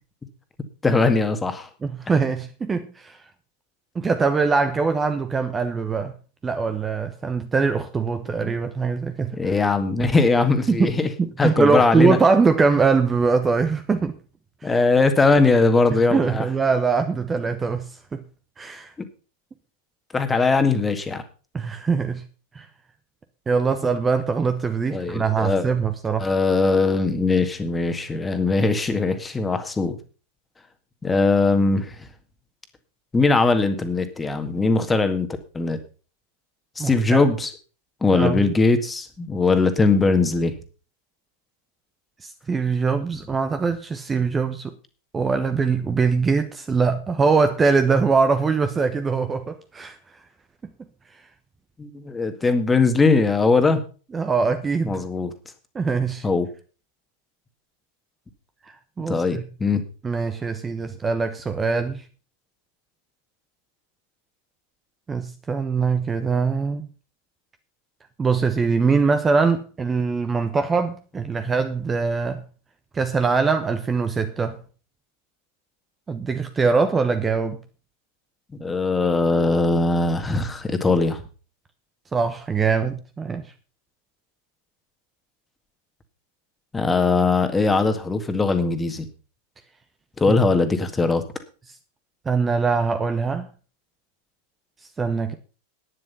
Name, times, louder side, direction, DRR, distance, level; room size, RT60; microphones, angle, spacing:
voice 1, 0.8-1.7 8.4-8.5 9.4-11.1 11.4-12.2 14.6-16.4 20.1-21.2 24.9-25.6 26.2-30.0 31.0-32.1 33.1-35.3 35.5-35.8 36.8-37.5 38.0-40.5 51.8-53.8 54.9-55.3 56.2-56.5 59.1-59.8 78.6-81.2 86.7-89.1 90.2-91.2, left 3 dB, 10° left, 1.9 m, -20 dB
voice 2, 1.8-3.2 3.9-6.1 6.4-9.4 10.7-10.9 11.2-14.2 14.6-14.7 15.9-18.2 18.6-18.9 21.5-22.2 22.5-22.7 23.5-26.3 36.8-37.2 38.1-38.4 42.2-44.7 45.1-50.0 54.1-55.0 55.7-56.3 58.7-59.4 60.0-62.0 65.1-66.9 68.2-72.4 72.9-74.6 76.1-77.6 82.1-83.4 90.3-90.5 92.2-93.5 95.0-95.3, right 4 dB, 15° right, 1.1 m, -22 dB
11.0 x 10.0 x 5.6 m
figure-of-eight pair, 90°, 0 cm